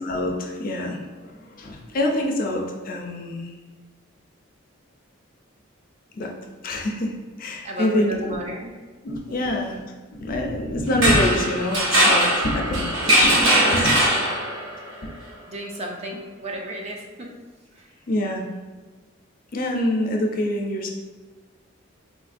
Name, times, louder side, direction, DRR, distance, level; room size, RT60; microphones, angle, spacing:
voice 1, 0.0-3.5 6.2-6.3 6.6-8.4 9.0-9.8 10.1-14.0 15.0-15.1 18.1-18.4 19.5-20.9, left 1 dB, 45° left, 2 dB, 0.4 m, -25 dB
voice 2, 7.6-8.7 9.3-9.6 13.7-13.8 15.4-17.3 17.7-17.9, right 1 dB, 30° right, 1 dB, 0.4 m, -34 dB
sound 1, 10.9-14.7, right 1 dB, 80° right, 0.8 m, -20 dB
3.6 x 2.5 x 2.4 m, 1.3 s
head